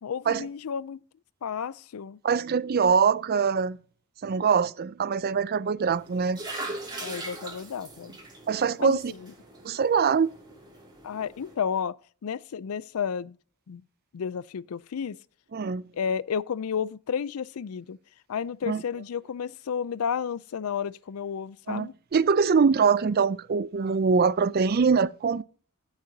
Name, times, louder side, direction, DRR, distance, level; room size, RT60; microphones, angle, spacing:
voice 1, 0.0-1.0 1.4-2.2 7.0-8.2 8.8-9.3 11.0-12.0 12.2-13.4 13.7-13.8 14.1-15.2 16.0-18.0 18.3-21.9, left 7 dB, 80° left, 0.4 m, -32 dB
voice 2, 2.2-3.8 4.2-6.4 8.5-9.1 9.6-10.3 15.5-15.9 18.7-18.8 21.7-25.4, right 5 dB, 45° right, 0.4 m, -23 dB
sound 1, 5.9-11.5, right 2 dB, 20° right, 3.0 m, -41 dB
15.0 x 6.6 x 2.7 m
head